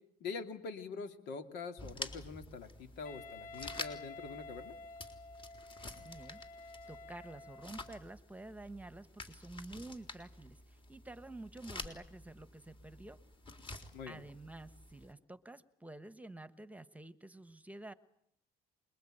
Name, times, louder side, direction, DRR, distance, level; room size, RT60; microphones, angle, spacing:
voice 1, 0.2-4.7 13.9-14.2, left 5 dB, 85° left, 7 dB, 2.8 m, -44 dB
sound 1, 1.8-15.1, left 2 dB, 30° left, 3.7 m, -49 dB
Wind instrument woodwind instrument, 3.0-8.0, left 3 dB, 50° left, 1.0 m, -51 dB
voice 2, 5.8-6.4 6.9-13.2 13.7-13.8 14.1-17.9, right 2 dB, 10° right, 13 dB, 1.2 m, -50 dB
26.0 x 22.5 x 9.1 m, 0.74 s
cardioid pair, 110°, 17 cm